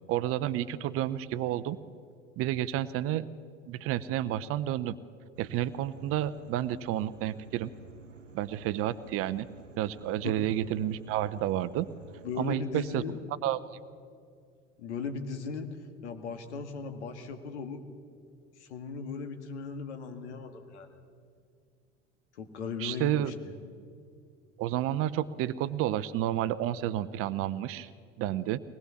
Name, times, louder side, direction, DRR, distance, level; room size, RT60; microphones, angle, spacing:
voice 1, 0.1-1.8 2.4-3.3 3.7-4.9 5.4-7.7 8.3-9.5 9.8-11.9 12.4-13.0 13.4-13.6 22.8-23.3 24.6-27.9 28.2-28.6, right 12 dB, 40° right, 15 dB, 0.7 m, -30 dB
sound 1, 5.3-12.5, right 3 dB, 85° right, 0.8 m, -51 dB
voice 2, 12.2-13.2 14.8-17.8 18.6-21.0 22.3-23.5, left 5 dB, 65° left, 7 dB, 2.1 m, -37 dB
23.0 x 19.5 x 7.2 m, 2.2 s
figure-of-eight pair, 75°, 37 cm